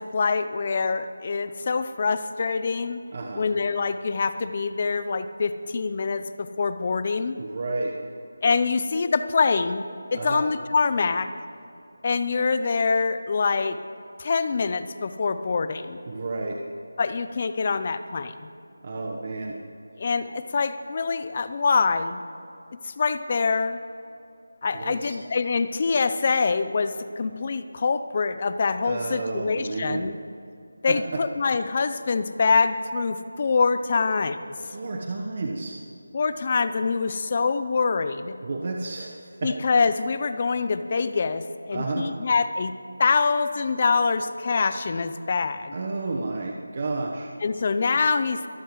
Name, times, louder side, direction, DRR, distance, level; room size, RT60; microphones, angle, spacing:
voice 1, 0.0-3.0 3.3-7.4 8.4-11.3 12.0-13.8 14.2-16.0 17.0-18.5 20.0-22.2 22.8-23.8 24.6-30.1 30.8-34.4 36.1-38.4 39.4-42.7 43.0-45.8 47.4-48.5, left 4 dB, 35° left, 11 dB, 0.6 m, -25 dB
voice 2, 3.1-3.5 7.4-7.9 10.1-10.4 16.0-16.6 18.8-19.5 24.7-25.2 28.8-30.1 30.9-31.2 34.6-35.7 38.4-39.5 41.7-42.1 45.7-47.3, right 3 dB, 40° right, 1 dB, 1.1 m, -31 dB
23.0 x 13.0 x 3.2 m, 2.7 s
figure-of-eight pair, 165°, 0 cm